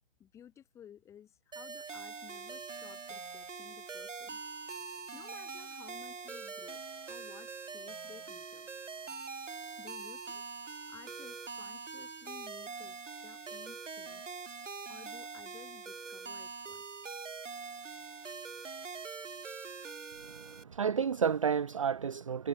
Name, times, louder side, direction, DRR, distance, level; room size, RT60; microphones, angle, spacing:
voice 1, 0.2-4.4 5.1-8.7 9.8-10.4 10.9-14.4 14.9-16.9, left 9 dB, 10° left, 5.0 m, -55 dB
sound 1, 1.5-20.6, right 5 dB, 80° right, 1.7 m, -44 dB
voice 2, 20.2-22.5, right 7 dB, 25° right, 0.8 m, -31 dB
figure-of-eight pair, 160°, 36 cm